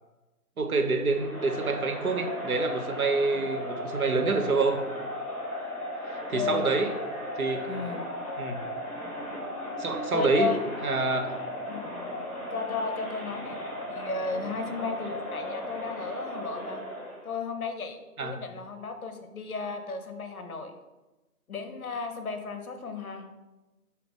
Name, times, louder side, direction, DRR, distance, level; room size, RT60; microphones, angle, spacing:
voice 1, 0.6-4.8 6.0-6.9 7.4-7.7 8.4-8.6 9.8-10.6 10.8-11.3 18.2-18.4, right 3 dB, 65° right, 5 dB, 0.7 m, -27 dB
Crowd, 1.1-17.3, left 1 dB, 25° left, 1.1 m, -36 dB
voice 2, 6.3-6.7 7.7-8.0 10.1-10.6 11.7-11.9 12.5-13.6 13.9-16.8 17.2-20.7 21.5-23.3, left 4 dB, 65° left, 6 dB, 0.7 m, -34 dB
5.1 x 2.8 x 3.4 m, 1.1 s
figure-of-eight pair, 175°, 46 cm